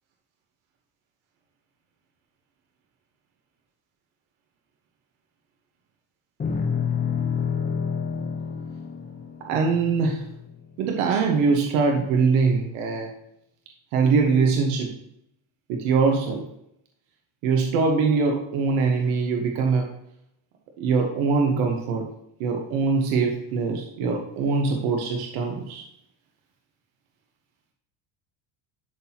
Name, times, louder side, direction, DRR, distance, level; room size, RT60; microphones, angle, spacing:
sound 1, 6.4-10.8, left 6 dB, 20° left, 0.7 m, -29 dB
voice 1, 9.5-10.2 10.8-13.1 13.9-14.9 15.7-16.4 17.4-19.8 20.8-22.0 22.4-25.8, right 4 dB, 80° right, 2 dB, 1.2 m, -22 dB
11.0 x 4.1 x 2.9 m, 0.78 s
cardioid pair, 125°, 49 cm